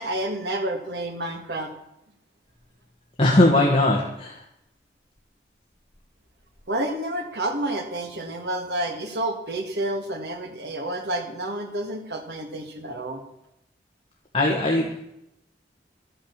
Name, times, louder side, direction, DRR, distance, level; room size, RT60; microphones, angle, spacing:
voice 1, 0.0-1.7 6.7-13.2, right 1 dB, 70° right, 4 dB, 1.7 m, -29 dB
voice 2, 3.2-4.4 14.3-15.0, left 1 dB, 30° left, -1 dB, 1.7 m, -19 dB
13.5 x 9.1 x 6.8 m, 0.82 s
head